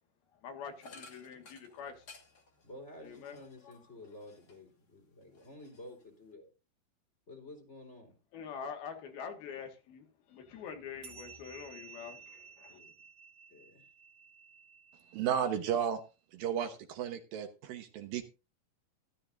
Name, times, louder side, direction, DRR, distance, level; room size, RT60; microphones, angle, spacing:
voice 1, 0.4-2.1 3.0-3.4 3.6-3.8 8.3-12.8, left 6 dB, 75° left, 3.6 m, -45 dB
sound 1, 0.8-4.8 5.2-6.3, left 3 dB, 35° left, 1.7 m, -57 dB
voice 2, 2.6-6.5 7.3-8.2 12.7-12.9 13.5-13.8, left 1 dB, 20° left, 3.0 m, -51 dB
sound 2, 11.0-15.9, right 6 dB, 35° right, 2.3 m, -55 dB
voice 3, 15.1-16.0 16.3-18.2, right 8 dB, 70° right, 2.6 m, -33 dB
14.0 x 13.5 x 2.6 m
omnidirectional pair, 4.5 m